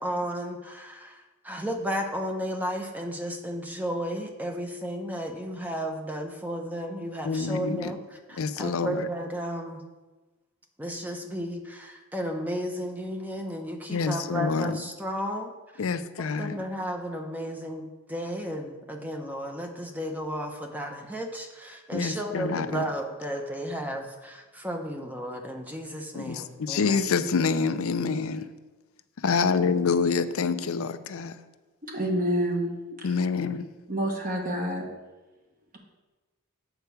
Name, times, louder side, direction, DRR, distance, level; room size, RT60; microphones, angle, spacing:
voice 1, 0.0-9.8 10.8-15.9 16.4-27.0, equal, 10° right, 3 dB, 0.7 m, -33 dB
voice 2, 7.2-7.9 8.4-9.1 13.9-14.8 15.8-16.6 21.9-22.9 26.1-28.5 29.2-31.4 33.0-33.6, left 5 dB, 85° left, 12 dB, 0.5 m, -27 dB
voice 3, 31.8-32.7 33.0-33.1 33.9-34.8, equal, 40° right, 0 dB, 1.4 m, -27 dB
8.1 x 4.6 x 6.9 m, 1.2 s
head